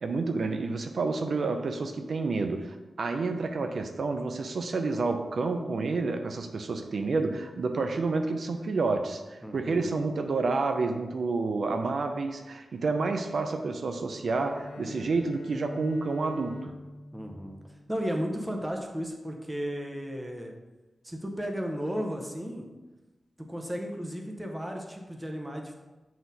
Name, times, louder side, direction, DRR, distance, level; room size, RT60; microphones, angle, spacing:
voice 1, 0.0-16.7, right 3 dB, 65° right, 5 dB, 0.5 m, -29 dB
voice 2, 9.4-9.9 17.1-17.6 17.9-20.5 21.0-22.7 23.4-25.7, equal, 10° right, 2 dB, 0.8 m, -34 dB
Bowed string instrument, 14.2-18.5, left 2 dB, 80° left, 1.1 m, -46 dB
7.7 x 4.2 x 4.0 m, 1.1 s
wide cardioid pair, 155°, 0 cm